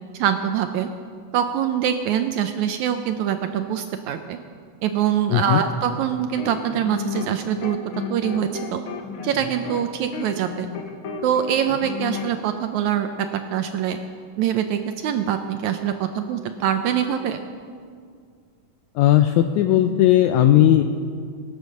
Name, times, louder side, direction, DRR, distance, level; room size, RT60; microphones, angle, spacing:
voice 1, 0.1-0.9 1.3-4.4 4.8-7.8 8.1-8.8 9.2-10.7 11.2-14.0 14.4-17.4, right 9 dB, 80° right, 7 dB, 1.8 m, -24 dB
voice 2, 5.3-5.6 18.9-20.8, left 12 dB, 90° left, 8 dB, 1.6 m, -16 dB
sound 1, 6.2-7.4 7.6-12.3, left 6 dB, 65° left, 1.4 m, -33 dB
22.5 x 8.1 x 6.4 m, 2.1 s
omnidirectional pair, 3.9 m